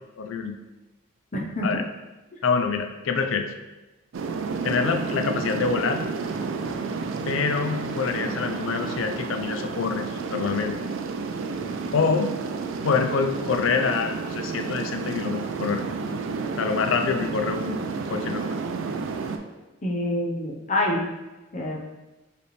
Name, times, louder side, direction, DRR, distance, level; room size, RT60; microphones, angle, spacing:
voice 1, 0.2-0.6 1.6-1.8 2.4-3.5 4.6-6.0 7.3-10.8 11.9-12.4 12.8-15.8 16.6-17.8 18.1-18.6, left 5 dB, 70° left, 6 dB, 0.4 m, -26 dB
voice 2, 1.3-1.8 19.8-21.0 21.5-21.8, left 1 dB, 35° left, -2 dB, 0.7 m, -26 dB
sound 1, 4.1-19.4, right 4 dB, 65° right, 0.4 m, -31 dB
4.8 x 3.3 x 3.2 m, 1.1 s
head